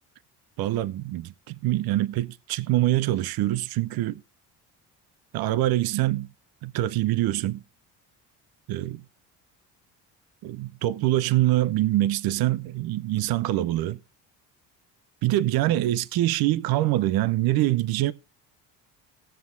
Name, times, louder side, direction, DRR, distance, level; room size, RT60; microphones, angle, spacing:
voice 1, 0.6-4.2 5.3-6.3 6.6-7.6 8.7-9.0 10.4-14.0 15.2-18.1, right 15 dB, 55° right, 0.6 m, -24 dB
18.0 x 7.6 x 2.5 m
hypercardioid pair, 65°, 44 cm